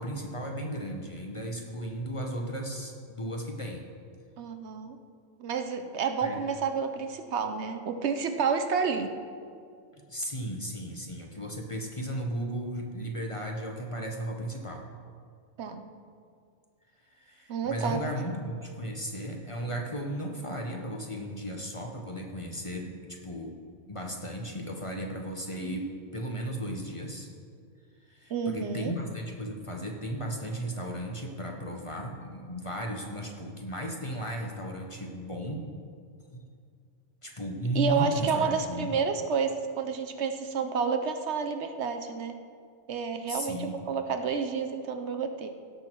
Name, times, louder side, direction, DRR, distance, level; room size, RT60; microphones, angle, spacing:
voice 1, 0.0-3.9 6.2-6.4 10.0-14.9 17.1-23.6 23.9-27.3 28.1-35.7 36.3-36.4 37.2-39.0 43.3-43.9, right 1 dB, 30° left, 1 dB, 0.9 m, -35 dB
voice 2, 4.4-5.0 5.4-9.1 15.6-15.8 17.5-18.1 28.3-28.9 37.7-42.4 42.9-45.5, right 5 dB, 65° right, 7 dB, 0.9 m, -30 dB
17.0 x 6.1 x 4.5 m, 2.2 s
omnidirectional pair, 1.3 m